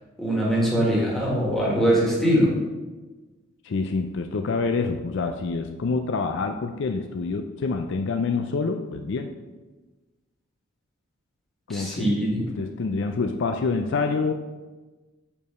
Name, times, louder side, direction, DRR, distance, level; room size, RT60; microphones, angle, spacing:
voice 1, 0.2-2.5 11.7-12.4, equal, ahead, -5 dB, 1.6 m, -22 dB
voice 2, 3.6-9.3 11.7-12.1 12.4-14.3, left 4 dB, 55° left, 6 dB, 0.4 m, -27 dB
5.3 x 4.7 x 5.4 m, 1.2 s
head